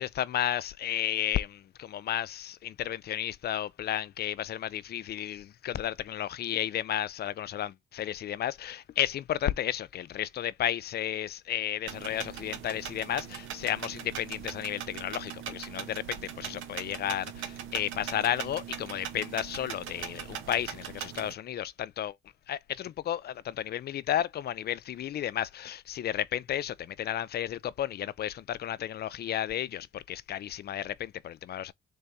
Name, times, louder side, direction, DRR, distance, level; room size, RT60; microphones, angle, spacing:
voice 1, 0.0-22.1 22.5-31.7, left 11 dB, 55° left, 0.4 m, -33 dB
sound 1, 11.9-21.3, right 9 dB, 85° right, 1.0 m, -40 dB
3.4 x 3.4 x 4.1 m
cardioid pair, 90°, 20 cm